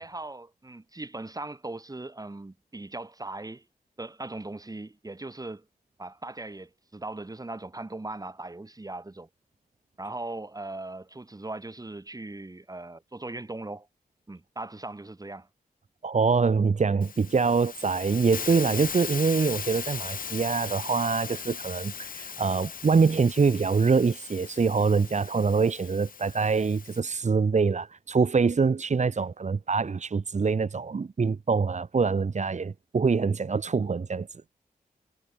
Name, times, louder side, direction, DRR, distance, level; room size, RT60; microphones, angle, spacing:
voice 1, 0.0-3.7 4.0-5.7 6.0-9.3 10.0-13.9 14.3-15.5, right 2 dB, 25° right, 4.0 m, -39 dB
voice 2, 16.0-34.3, right 5 dB, 50° right, 1.5 m, -24 dB
Hiss, 17.0-27.0, left 6 dB, 70° left, 0.9 m, -38 dB
wide cardioid pair, 105°, 15 cm